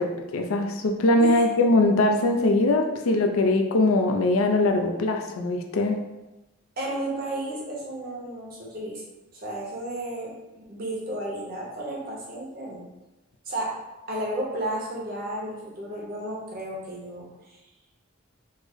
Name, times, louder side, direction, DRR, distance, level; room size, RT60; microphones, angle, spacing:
voice 1, 0.0-6.0, left 2 dB, 90° left, 4 dB, 0.4 m, -22 dB
voice 2, 6.8-9.0 9.3-10.4 10.7-12.8 13.5-13.7 14.1-17.6, right 1 dB, 45° right, -3 dB, 0.8 m, -33 dB
3.2 x 2.1 x 3.5 m, 1.0 s
head